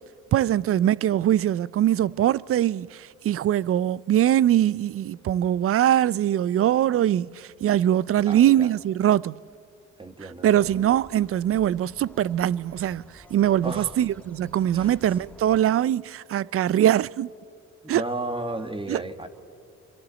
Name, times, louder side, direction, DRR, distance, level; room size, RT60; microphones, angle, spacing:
voice 1, 0.3-9.4 10.4-17.3 17.9-18.0 18.9-19.0, right 11 dB, 50° right, 0.4 m, -22 dB
voice 2, 8.3-8.7 10.0-10.8 13.6-14.0 14.7-15.0 17.8-19.3, right 2 dB, 15° right, 1.8 m, -33 dB
sound 1, 10.6-15.6, left 1 dB, 5° left, 1.5 m, -50 dB
27.0 x 24.5 x 4.1 m
cardioid pair, 90°, 30 cm